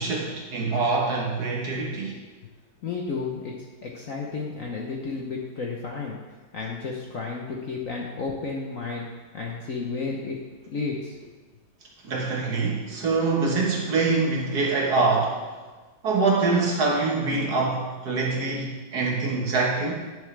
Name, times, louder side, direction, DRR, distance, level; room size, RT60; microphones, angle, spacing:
voice 1, 0.0-2.1 12.0-15.4 16.0-20.0, right 3 dB, 55° right, -2 dB, 1.7 m, -24 dB
voice 2, 2.8-6.2 6.5-9.1 9.3-10.4 10.7-11.2, left 4 dB, 55° left, -1 dB, 1.0 m, -32 dB
9.7 x 7.1 x 3.3 m, 1.3 s
omnidirectional pair, 2.2 m